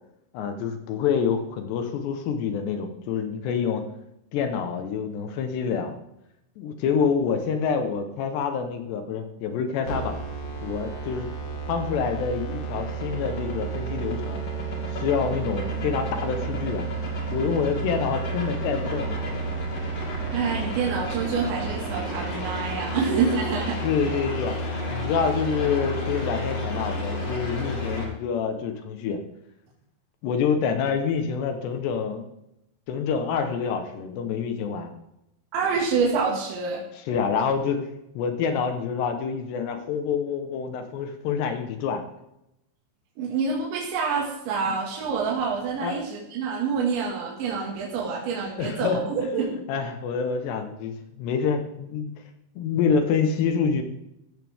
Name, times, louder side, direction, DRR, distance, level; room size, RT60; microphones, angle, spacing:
voice 1, 0.3-3.8 4.3-6.0 6.6-10.2 10.6-11.3 11.7-14.4 14.9-16.9 17.3-19.4 22.9-23.2 23.8-24.6 24.9-29.2 30.2-32.3 32.9-34.9 37.1-37.9 38.2-42.0 45.8-46.1 48.6-52.1 52.6-53.8, left 6 dB, 70° left, 6 dB, 3.1 m, -27 dB
sound 1, 9.9-28.0, right 2 dB, 40° left, 3.2 m, -31 dB
voice 2, 20.3-23.8 35.5-36.8 43.2-49.6, right 5 dB, 75° right, -2 dB, 4.3 m, -27 dB
15.5 x 13.0 x 3.6 m, 0.83 s
omnidirectional pair, 5.4 m